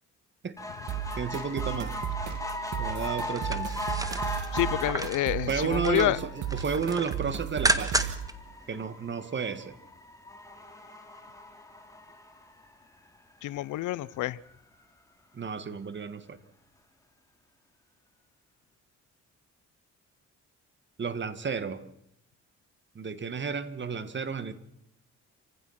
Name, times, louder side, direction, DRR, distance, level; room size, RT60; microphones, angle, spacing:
sound 1, 0.6-13.2 13.7-13.8 14.1-14.2 14.5-14.6, left 1 dB, 10° left, 3.4 m, -39 dB
sound 2, 0.9-8.3, right 10 dB, 75° right, 2.2 m, -35 dB
voice 1, 1.2-2.0 2.8-3.8 5.5-8.1 8.7-9.8 15.3-16.4 21.0-21.8 23.0-24.5, right 6 dB, 40° right, 12 dB, 1.9 m, -32 dB
sound 3, 3.2-5.3 5.7-6.2 6.5-8.3 8.7-8.8, right 1 dB, 10° right, 1.6 m, -31 dB
voice 2, 4.5-6.2 13.4-14.4, left 16 dB, 80° left, 22 dB, 0.7 m, -28 dB
28.0 x 16.0 x 5.9 m, 0.79 s
cardioid pair, 90°, 30 cm